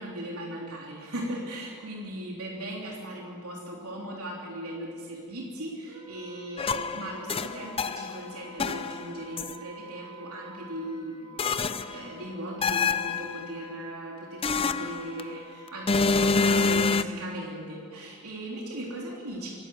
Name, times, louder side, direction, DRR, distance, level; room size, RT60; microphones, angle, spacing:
voice 1, 0.0-19.5, right 1 dB, 80° right, -2 dB, 3.5 m, -38 dB
Wind instrument woodwind instrument, 5.9-16.3, right 1 dB, 60° right, 4.0 m, -48 dB
sound 1, 6.6-8.2 8.6-9.5 11.4-12.1 12.6-13.5 14.4-15.3 15.9-17.0, left 4 dB, 25° left, 0.6 m, -26 dB
26.5 x 12.5 x 7.9 m, 2.1 s
head